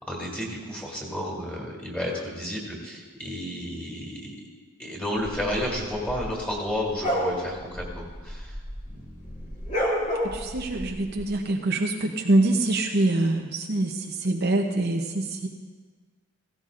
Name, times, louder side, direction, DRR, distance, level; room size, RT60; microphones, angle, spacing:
voice 1, 0.1-4.3 4.8-8.6 8.9-9.5, left 1 dB, 5° left, -2 dB, 2.4 m, -32 dB
sound 1, 5.2-8.9 9.2-11.2, equal, 35° left, 2.1 m, -30 dB
voice 2, 10.2-15.5, right 2 dB, 50° right, 2 dB, 0.7 m, -25 dB
17.0 x 16.0 x 2.5 m, 1.4 s
head